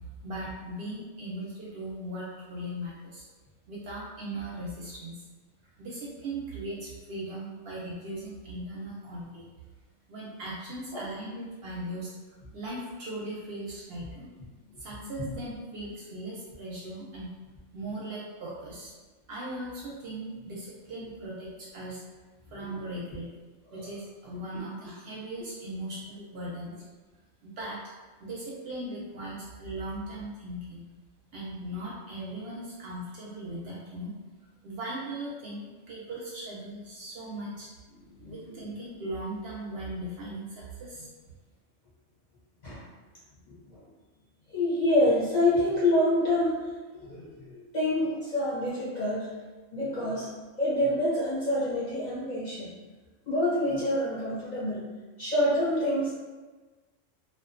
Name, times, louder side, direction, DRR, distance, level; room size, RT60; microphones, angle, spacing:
voice 1, 0.2-3.2 3.7-5.2 5.8-9.5 10.1-14.3 14.8-17.3 17.7-18.9 19.3-22.0 22.5-23.3 23.7-26.7 27.4-27.8 28.2-30.8 31.3-34.1 34.6-37.7 38.3-41.1, right 1 dB, 65° right, -5 dB, 0.7 m, -38 dB
voice 2, 38.2-38.8 42.6-42.8 43.5-43.8 44.5-46.6 46.9-49.3 49.7-50.3 50.6-52.7 53.3-54.8 55.2-56.1, left 1 dB, 45° left, -9 dB, 0.7 m, -27 dB
2.4 x 2.2 x 2.4 m, 1.3 s
omnidirectional pair, 1.3 m